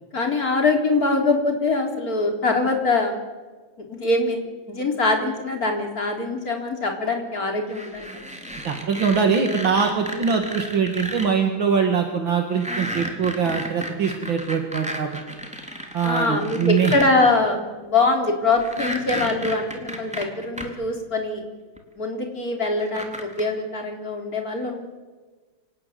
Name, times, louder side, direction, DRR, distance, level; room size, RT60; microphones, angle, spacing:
voice 1, 0.1-3.2 3.8-4.4 4.7-8.5 10.1-10.3 16.0-21.4 22.0-24.8, left 3 dB, 45° left, 2 dB, 4.4 m, -23 dB
sound 1, 7.7-11.3 12.5-17.1 18.6-20.7 21.8-21.9 22.8-23.4, equal, 5° right, 3.5 m, -33 dB
voice 2, 8.6-15.2 15.9-16.9, right 6 dB, 70° right, 3 dB, 2.8 m, -22 dB
26.0 x 19.0 x 9.4 m, 1.4 s
omnidirectional pair, 2.2 m